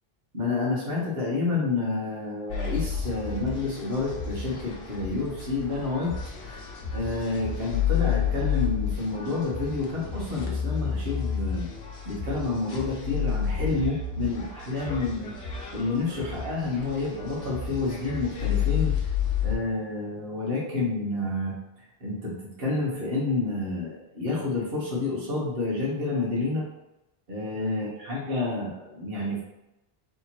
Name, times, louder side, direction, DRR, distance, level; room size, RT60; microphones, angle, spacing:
voice 1, 0.3-6.1 6.4-6.7 6.9-11.7 12.0-15.3 15.7-19.0 19.4-21.5 22.0-26.6 27.3-29.4, left 3 dB, 65° right, -7 dB, 1.4 m, -29 dB
sound 1, 2.5-19.5, left 7 dB, 75° left, 1.0 m, -31 dB
3.4 x 2.9 x 4.1 m, 0.93 s
omnidirectional pair, 1.1 m